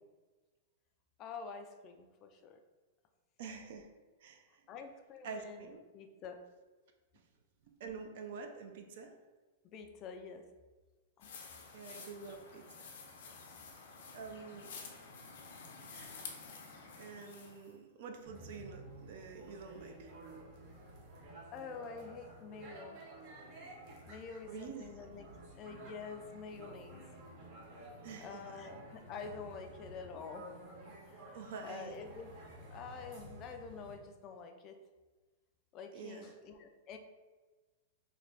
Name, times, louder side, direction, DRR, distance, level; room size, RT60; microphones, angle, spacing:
voice 1, 1.2-2.6 4.7-5.7 5.9-6.4 9.7-10.4 11.2-11.3 21.5-23.0 24.1-25.3 25.6-27.0 28.2-30.5 31.1-31.4 31.6-32.3 32.7-34.7 35.7-37.0, left 5 dB, 30° left, 6 dB, 0.3 m, -47 dB
voice 2, 3.4-3.9 4.2-4.4 5.2-5.8 7.8-9.2 11.7-12.6 14.1-14.7 15.8-16.2 17.0-20.1 24.5-24.8 28.0-28.4 31.3-32.0 35.9-36.3, right 5 dB, 60° right, 4 dB, 0.5 m, -47 dB
sound 1, 11.2-17.7, left 4 dB, 75° left, 0.6 m, -50 dB
sound 2, 18.2-34.0, right 1 dB, 45° right, 1.0 m, -52 dB
3.2 x 2.2 x 3.9 m, 1.3 s
hypercardioid pair, 145°, 0 cm